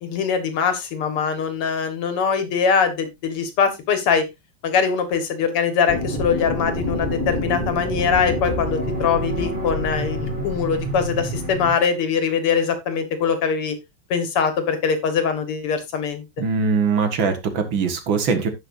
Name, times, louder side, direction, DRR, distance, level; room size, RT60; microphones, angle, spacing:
voice 1, 0.0-4.2 4.6-13.8 14.1-16.2, left 6 dB, 90° left, 9 dB, 2.5 m, -22 dB
sound 1, 5.9-11.7, equal, 20° right, 3.1 m, -27 dB
voice 2, 16.4-18.5, right 5 dB, 65° right, 7 dB, 2.3 m, -21 dB
16.5 x 5.6 x 2.6 m, 0.21 s
omnidirectional pair, 2.4 m